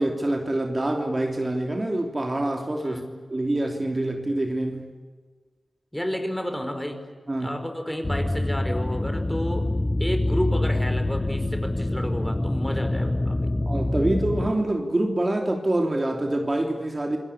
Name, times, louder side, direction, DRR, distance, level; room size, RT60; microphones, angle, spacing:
voice 1, 0.0-3.0 3.3-4.9 7.3-7.5 13.7-17.2, right 1 dB, 30° right, 3 dB, 3.2 m, -26 dB
voice 2, 5.9-7.0 7.4-9.7 10.0-13.5, left 1 dB, 10° left, 7 dB, 5.0 m, -31 dB
sound 1, 8.0-14.5, left 1 dB, 25° left, 1.3 m, -25 dB
28.0 x 21.0 x 8.7 m, 1.5 s
wide cardioid pair, 70°, 0 cm